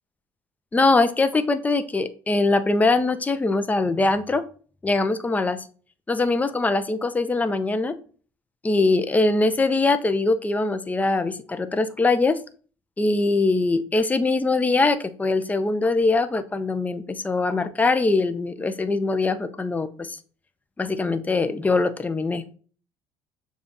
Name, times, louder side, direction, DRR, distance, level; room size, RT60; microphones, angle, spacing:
voice 1, 0.7-4.4 4.8-5.6 6.1-8.0 8.6-12.4 13.0-20.2 20.8-22.4, left 3 dB, 15° left, 11 dB, 0.5 m, -22 dB
6.8 x 2.4 x 2.7 m, 0.41 s
supercardioid pair, 90°, 9 cm